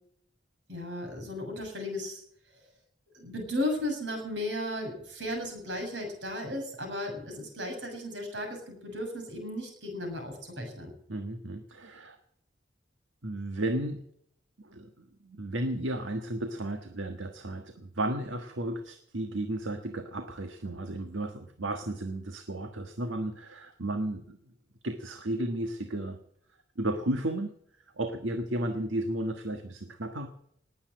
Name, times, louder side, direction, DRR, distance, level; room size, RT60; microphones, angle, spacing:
voice 1, 0.7-2.2 3.1-10.9, left 1 dB, 65° right, 3 dB, 7.1 m, -35 dB
voice 2, 11.1-12.2 13.2-14.0 14.6-24.4 24.8-26.2 26.8-27.5 28.0-30.3, right 1 dB, 85° right, 6 dB, 1.5 m, -33 dB
19.5 x 8.6 x 7.8 m, 0.70 s
head